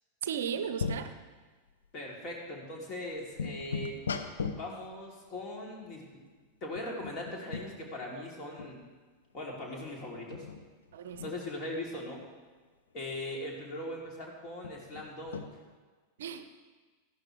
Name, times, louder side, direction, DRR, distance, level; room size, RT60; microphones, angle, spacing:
voice 1, 0.2-1.1 10.9-11.3 16.2-16.6, right 8 dB, 60° right, 10 dB, 0.7 m, -36 dB
sound 1, 0.8-1.1 1.8-1.9 2.6-2.7 3.2-4.8 6.8-7.7 8.0-8.1 8.5-8.7 10.3-11.4 14.6-15.5, left 5 dB, 70° left, 0.7 m, -37 dB
voice 2, 1.9-4.0 4.6-6.2 6.6-8.8 9.3-10.5 11.2-12.2 12.9-15.4, left 1 dB, 35° left, -2 dB, 3.0 m, -40 dB
14.0 x 11.5 x 3.3 m, 1.4 s
figure-of-eight pair, 90°, 0 cm